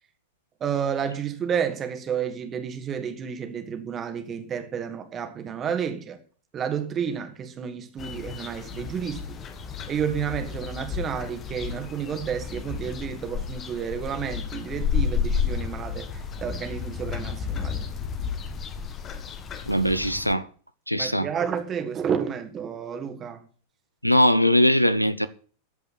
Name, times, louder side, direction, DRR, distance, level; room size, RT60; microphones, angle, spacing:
voice 1, 0.6-6.2 6.5-9.4 9.9-17.8 20.9-23.4, right 7 dB, 25° right, 2.2 m, -31 dB
sound 1, 8.0-20.3, left 6 dB, 25° left, 1.5 m, -32 dB
voice 2, 19.7-20.5 20.9-21.3 24.0-25.3, equal, 90° left, 0.7 m, -20 dB
14.0 x 5.4 x 8.6 m
figure-of-eight pair, 90°, 0 cm